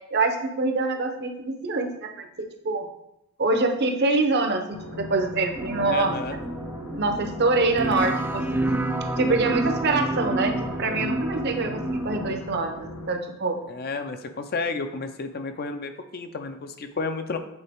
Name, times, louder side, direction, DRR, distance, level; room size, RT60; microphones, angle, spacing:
voice 1, 0.1-2.9 3.4-6.1 6.9-8.8 9.2-13.6, right 3 dB, 50° right, 5 dB, 0.7 m, -25 dB
sound 1, 4.7-13.1, left 1 dB, 85° left, 0.8 m, -39 dB
sound 2, 5.6-12.4, right 1 dB, 10° right, 0.4 m, -29 dB
voice 2, 5.9-6.4 13.7-17.4, left 4 dB, 45° left, 8 dB, 0.5 m, -31 dB
8.0 x 3.9 x 3.5 m, 0.83 s
head